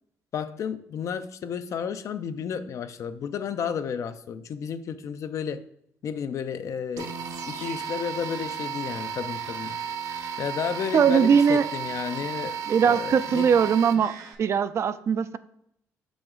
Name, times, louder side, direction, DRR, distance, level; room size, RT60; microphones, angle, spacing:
voice 1, 0.3-5.6 6.0-7.2 7.5-9.8 10.4-12.6 12.8-13.6, left 7 dB, 60° left, 11 dB, 0.4 m, -32 dB
sound 1, 7.0-14.3, right 7 dB, 70° right, 0.7 m, -34 dB
voice 2, 10.9-11.7 12.7-14.1 14.4-15.4, right 7 dB, 50° right, 13 dB, 0.3 m, -20 dB
6.0 x 5.0 x 3.7 m, 0.72 s
cardioid pair, 90°, 6 cm